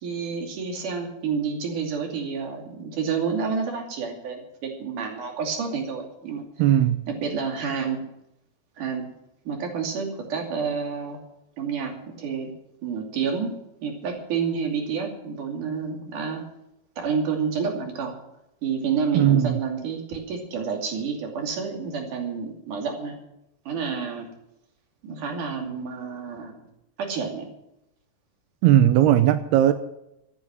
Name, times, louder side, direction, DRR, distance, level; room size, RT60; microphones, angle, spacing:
voice 1, 0.0-6.4 7.1-8.0 8.8-9.1 9.5-11.2 11.6-12.5 12.8-13.5 13.8-16.4 17.0-18.2 18.6-23.2 23.7-24.3 25.0-26.6 27.0-27.5, right 6 dB, 55° right, 2 dB, 4.0 m, -29 dB
voice 2, 6.6-7.0 19.1-19.6 28.6-29.7, right 11 dB, 90° right, 10 dB, 2.7 m, -18 dB
14.5 x 9.3 x 7.6 m, 0.85 s
omnidirectional pair, 4.6 m